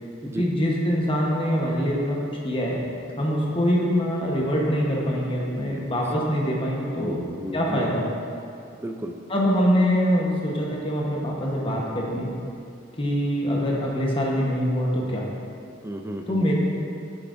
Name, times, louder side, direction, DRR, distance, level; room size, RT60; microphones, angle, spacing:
voice 1, 0.3-2.8 3.2-7.2 7.5-8.0 9.3-12.3 12.9-15.3 16.3-16.6, equal, 25° left, -3 dB, 1.0 m, -24 dB
voice 2, 7.0-7.9 8.8-9.2 15.8-16.6, right 1 dB, 15° right, 4 dB, 0.4 m, -34 dB
8.7 x 7.9 x 2.6 m, 2.6 s
head